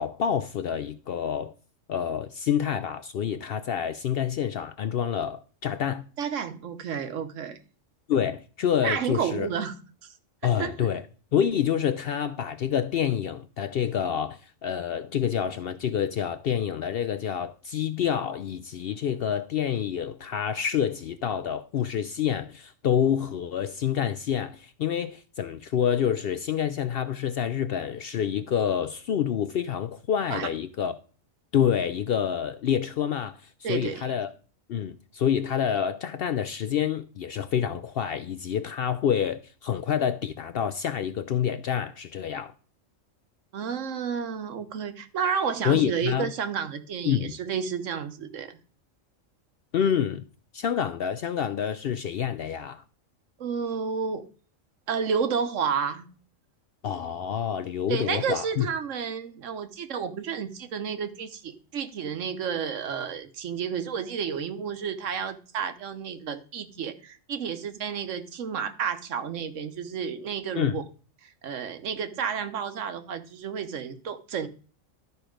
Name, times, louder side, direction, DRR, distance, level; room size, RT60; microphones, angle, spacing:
voice 1, 0.0-1.5 1.9-6.0 8.1-9.5 10.4-11.0 11.3-31.0 31.5-33.4 33.7-34.3 34.7-42.5 45.6-46.3 47.1-47.3 49.7-50.2 50.5-52.8 56.8-58.7 70.6-70.8, left 8 dB, 65° left, 0.6 m, -27 dB
voice 2, 6.2-7.6 8.8-10.1 10.4-10.7 30.3-30.5 33.6-34.1 43.5-48.6 53.4-54.2 54.9-56.1 57.9-70.8 71.2-74.5, right 7 dB, 70° right, 1.2 m, -31 dB
12.0 x 4.5 x 5.0 m
omnidirectional pair, 1.3 m